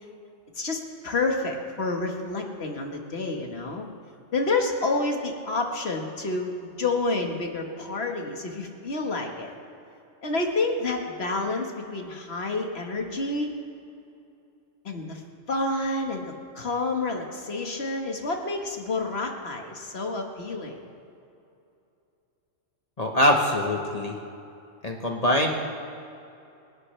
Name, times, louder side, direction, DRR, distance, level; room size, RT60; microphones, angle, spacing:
voice 1, 0.5-3.9 4.3-9.5 10.2-13.5 14.8-15.2 15.5-16.2 16.5-20.8, left 3 dB, 55° left, 2 dB, 1.8 m, -29 dB
voice 2, 23.0-24.2 24.8-25.5, left 1 dB, 35° left, 1 dB, 1.1 m, -23 dB
26.0 x 11.5 x 3.3 m, 2.7 s
omnidirectional pair, 1.3 m